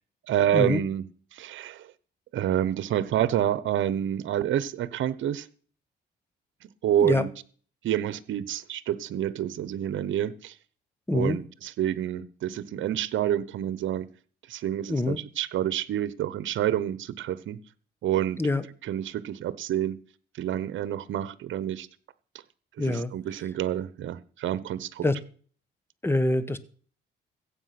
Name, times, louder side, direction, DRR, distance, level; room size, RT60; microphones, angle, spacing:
voice 1, 0.3-1.9 2.3-5.5 6.8-7.3 7.8-10.6 11.1-14.1 14.5-17.6 18.0-18.4 18.8-20.0 20.3-21.9 22.8-25.0, right 11 dB, 75° right, 18 dB, 1.0 m, -28 dB
voice 2, 11.1-11.4 14.9-15.2 18.4-18.6 22.8-23.1 25.0-25.1 26.0-26.6, left 2 dB, 10° left, 15 dB, 1.3 m, -25 dB
15.0 x 8.6 x 5.9 m, 0.43 s
cardioid pair, 90°, 20 cm